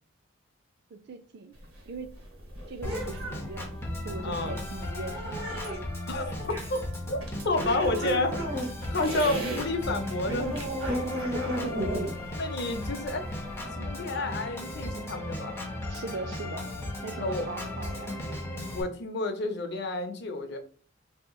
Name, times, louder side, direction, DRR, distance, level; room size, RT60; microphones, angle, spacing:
voice 1, 0.9-1.5 1.9-2.2 2.7-5.8 8.0-8.1 11.3-11.8 15.9-16.7 17.0-18.4, right 3 dB, 50° right, 0.4 m, -40 dB
sound 1, 1.5-9.6 10.0-13.7, right 1 dB, 80° right, 1.4 m, -35 dB
Organ, 2.8-18.8, left 1 dB, 10° left, 0.6 m, -36 dB
voice 2, 4.2-4.6 6.1-6.8 7.1-8.6 8.9-10.6 12.3-13.2 13.8-15.5 17.2-17.5 18.7-20.6, left 2 dB, 55° left, 0.5 m, -30 dB
3.7 x 2.8 x 2.3 m
head